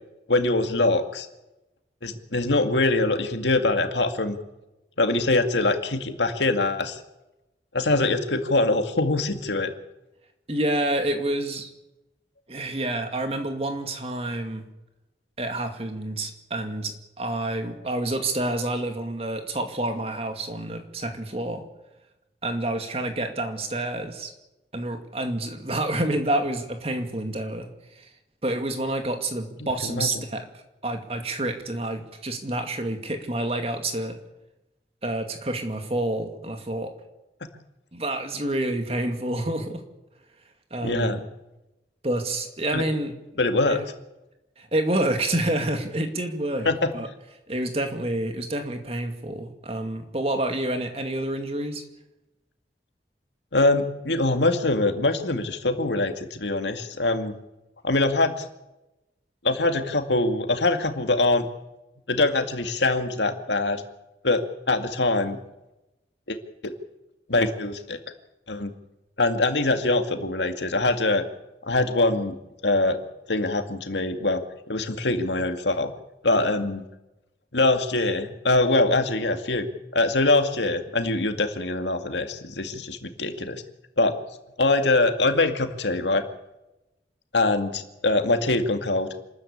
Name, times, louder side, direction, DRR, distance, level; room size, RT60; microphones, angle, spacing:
voice 1, 0.3-1.3 2.0-4.4 5.0-7.0 7.7-9.7 29.8-30.1 40.8-41.2 42.7-42.8 43.4-43.8 46.7-46.9 53.5-57.3 57.8-58.4 59.4-61.5 62.1-63.8 64.2-65.4 66.3-66.4 66.6-66.7 67.3-68.0 68.5-68.7 69.2-71.2 71.7-72.4 72.6-73.0 73.3-74.4 74.7-75.9 76.2-76.8 77.5-79.7 79.9-83.6 84.0-84.1 84.6-86.2 87.3-89.1, left 2 dB, 85° left, 6 dB, 2.2 m, -23 dB
voice 2, 10.5-11.7 12.5-14.7 15.4-21.6 22.4-24.3 24.7-27.7 28.0-28.1 28.4-30.5 30.8-34.2 35.0-36.9 37.9-39.8 40.7-41.2 42.0-43.1 43.7-43.8 44.6-47.1 47.5-51.8, right 1 dB, 35° right, 6 dB, 2.3 m, -28 dB
27.0 x 13.5 x 8.6 m, 0.97 s
head